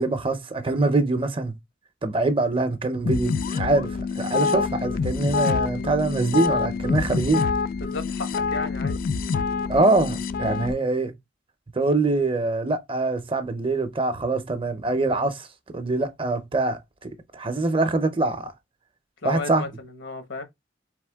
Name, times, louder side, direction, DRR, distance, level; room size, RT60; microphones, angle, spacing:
voice 1, 0.0-1.6 2.0-7.5 9.7-11.1 11.7-15.5 15.7-18.5 19.2-19.6, right 2 dB, 30° right, 0.6 m, -24 dB
sound 1, 3.1-10.7, left 5 dB, 50° left, 0.4 m, -26 dB
voice 2, 7.8-9.0 19.2-20.4, left 3 dB, 75° left, 1.2 m, -34 dB
4.0 x 3.5 x 3.4 m
head